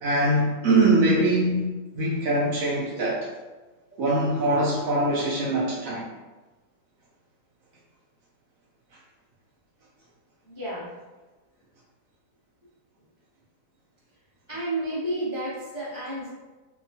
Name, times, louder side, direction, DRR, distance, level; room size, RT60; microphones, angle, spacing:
voice 1, 0.0-3.3 4.0-6.1, right 2 dB, 70° right, -5 dB, 0.8 m, -23 dB
voice 2, 3.9-4.2 10.4-10.9 14.5-16.3, right 1 dB, 45° left, -11 dB, 0.3 m, -31 dB
2.8 x 2.2 x 2.6 m, 1.2 s
omnidirectional pair, 1.8 m